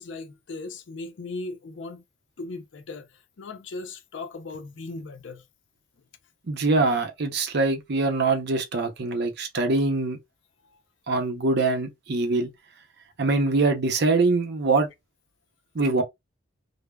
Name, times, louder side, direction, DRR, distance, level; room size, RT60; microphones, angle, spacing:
voice 1, 0.0-2.0 2.4-3.1 3.4-5.4 10.6-10.8, left 3 dB, 65° left, 0.5 m, -37 dB
voice 2, 6.5-10.2 11.1-12.5 13.2-14.9 15.7-16.0, right 3 dB, 60° right, 0.6 m, -23 dB
3.3 x 2.0 x 2.2 m
head